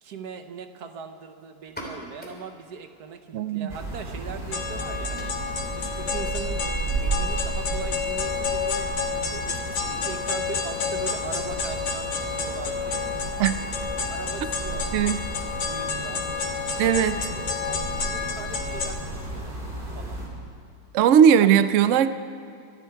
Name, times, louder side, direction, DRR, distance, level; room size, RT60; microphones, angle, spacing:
voice 1, 0.0-5.5 5.8-8.9 9.3-13.1 14.1-15.2 15.4-16.2 16.9-17.0 17.3-19.6 19.9-20.2 21.0-21.2, right 6 dB, 65° right, 8 dB, 1.4 m, -40 dB
sound 1, 1.6-9.0, equal, 5° left, 2.7 m, -48 dB
voice 2, 3.3-3.7 13.4-13.6 14.9-15.2 16.8-17.2 20.9-22.1, right 8 dB, 80° right, 12 dB, 0.6 m, -18 dB
sound 2, 3.7-20.3, right 2 dB, 30° right, 2.9 m, -33 dB
sound 3, 4.5-18.9, left 5 dB, 75° left, 2.1 m, -30 dB
25.5 x 10.5 x 4.6 m, 2.6 s
omnidirectional pair, 1.9 m